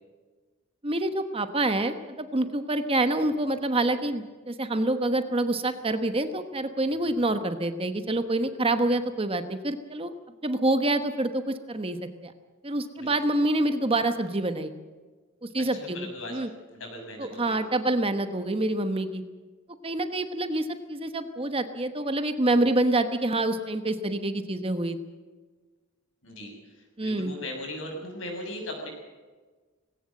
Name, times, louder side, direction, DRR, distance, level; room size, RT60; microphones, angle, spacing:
voice 1, 0.8-10.1 10.4-12.3 12.6-14.7 15.4-16.5 17.2-19.2 19.8-25.0 27.0-27.3, right 2 dB, 25° right, 9 dB, 1.1 m, -27 dB
voice 2, 15.6-16.4 16.7-17.6 26.2-28.9, left 1 dB, 65° left, 3 dB, 6.8 m, -38 dB
19.5 x 17.5 x 7.7 m, 1.3 s
head